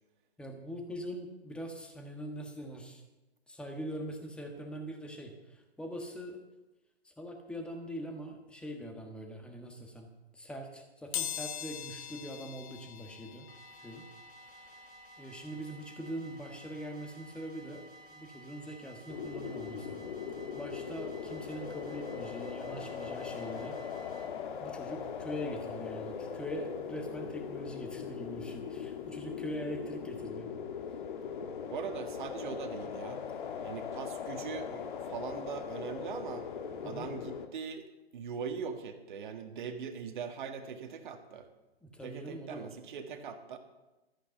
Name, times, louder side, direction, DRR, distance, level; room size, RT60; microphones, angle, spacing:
voice 1, 0.4-3.0 3.5-6.4 7.0-10.1 10.3-13.5 13.8-14.0 14.4-14.9 15.2-20.0 20.5-23.8 24.6-30.5 36.8-37.1 41.8-42.8, equal, 5° left, 3 dB, 1.4 m, -42 dB
sound 1, 11.1-21.8 22.3-22.4 23.5-23.6 23.9-26.0 26.4-29.0 29.3-29.5 29.8-29.9, left 10 dB, 35° left, 1.2 m, -46 dB
sound 2, 13.5-24.3, right 2 dB, 80° left, 4.6 m, -54 dB
sound 3, 19.1-37.5, left 7 dB, 50° left, 1.4 m, -40 dB
voice 2, 31.7-33.2 33.6-36.5 36.8-37.9 38.1-41.5 42.0-43.6, right 6 dB, 50° right, 5 dB, 1.7 m, -41 dB
14.0 x 8.8 x 7.0 m, 1.0 s
hypercardioid pair, 140°, 32 cm